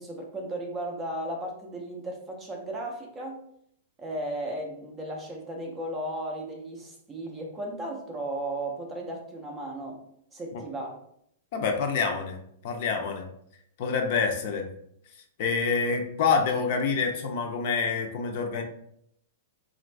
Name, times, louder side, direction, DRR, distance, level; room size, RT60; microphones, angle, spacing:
voice 1, 0.0-3.4 4.0-10.0 10.3-11.0, right 1 dB, 10° right, 1 dB, 0.5 m, -35 dB
voice 2, 11.5-13.3 13.8-14.7 15.4-18.6, left 5 dB, 40° left, 4 dB, 0.5 m, -27 dB
4.0 x 2.5 x 3.2 m, 0.70 s
supercardioid pair, 170°, 0 cm